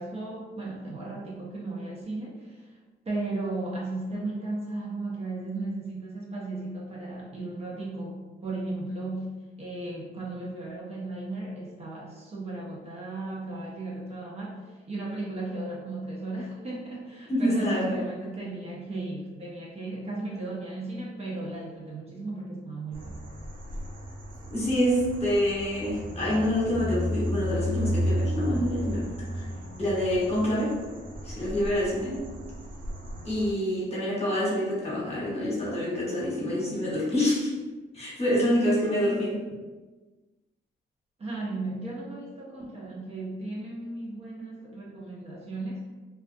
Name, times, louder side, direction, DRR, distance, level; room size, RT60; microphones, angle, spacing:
voice 1, 0.0-2.8 3.1-9.3 9.6-23.2 38.4-38.5 41.2-45.9, right 2 dB, 30° right, -4 dB, 0.6 m, -35 dB
voice 2, 17.3-18.0 24.5-29.4 29.8-30.8 31.2-32.2 33.2-37.5 37.9-39.4, equal, 30° left, -5 dB, 1.0 m, -26 dB
sound 1, 22.9-33.5, equal, 80° right, 0.6 m, -33 dB
2.4 x 2.2 x 2.5 m, 1.3 s
cardioid pair, 90°, 20 cm